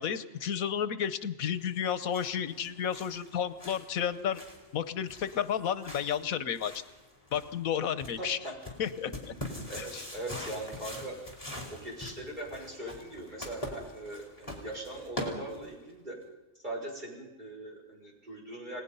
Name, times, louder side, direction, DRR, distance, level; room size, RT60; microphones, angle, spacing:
voice 1, 0.0-4.4 4.7-6.7 7.3-8.4 8.8-9.3 9.8-10.0, left 8 dB, 90° left, 13 dB, 1.4 m, -32 dB
sound 1, 1.7-15.9, left 1 dB, 25° left, 4.6 m, -44 dB
voice 2, 8.2-8.6 9.7-11.4 11.7-16.2 16.5-18.8, right 1 dB, 35° right, -1 dB, 6.1 m, -40 dB
29.5 x 19.0 x 5.6 m, 1.0 s
omnidirectional pair, 1.4 m